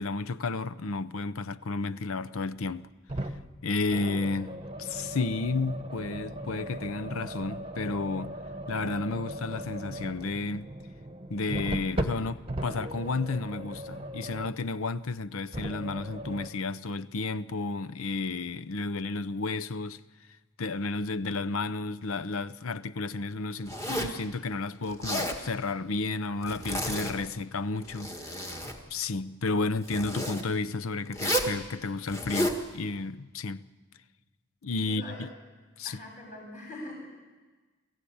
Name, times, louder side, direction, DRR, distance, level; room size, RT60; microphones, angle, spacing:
voice 1, 0.0-2.9 3.6-8.4 8.7-10.7 11.3-20.0 20.6-28.6 28.9-33.7 34.6-35.3 35.8-36.0, left 3 dB, 75° left, 0.7 m, -32 dB
sound 1, 3.1-3.5 3.9-14.7 15.5-16.5, right 1 dB, 25° right, 1.1 m, -38 dB
Zipper (clothing), 23.7-24.2 24.9-25.4 26.4-27.2 27.8-28.8 29.8-30.4 31.1-31.6 32.1-32.6, equal, 15° left, 1.8 m, -31 dB
voice 2, 34.9-35.2 35.8-36.9, left 1 dB, 35° left, 7.7 m, -43 dB
24.0 x 15.5 x 8.6 m
head